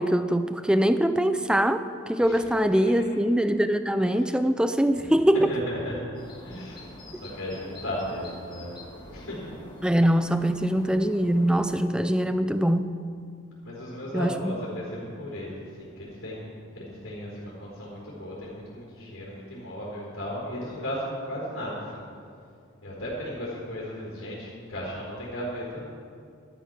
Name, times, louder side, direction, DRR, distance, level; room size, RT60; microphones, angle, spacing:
voice 1, 0.0-5.5 9.8-13.0 14.1-14.5, equal, 5° right, 10 dB, 0.4 m, -23 dB
voice 2, 5.5-6.0 6.4-6.8 7.1-9.5 13.6-16.5 16.7-22.0 22.8-25.8, equal, 90° left, -7 dB, 4.4 m, -35 dB
sound 1, 6.1-11.9, left 1 dB, 20° left, 1.8 m, -46 dB
13.0 x 12.0 x 6.0 m, 2.3 s
head